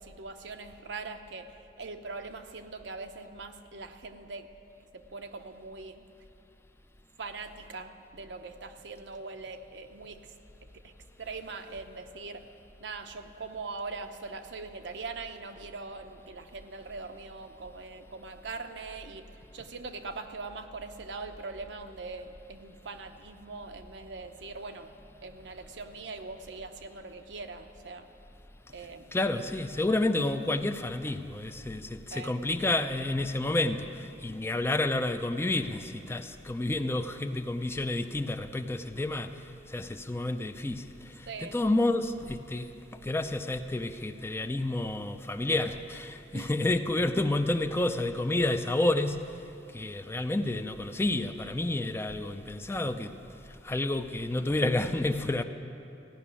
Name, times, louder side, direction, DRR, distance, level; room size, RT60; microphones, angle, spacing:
voice 1, 0.0-4.5 4.9-6.0 7.2-10.3 10.7-10.9 11.2-12.5 12.8-28.1 28.7-29.2 32.1-32.4 41.3-41.6 46.3-46.5, right 3 dB, 90° right, 0.8 m, -42 dB
voice 2, 29.1-42.7 43.0-49.4 49.7-53.2 53.6-55.4, left 2 dB, 15° left, 0.4 m, -30 dB
15.5 x 5.9 x 9.7 m
head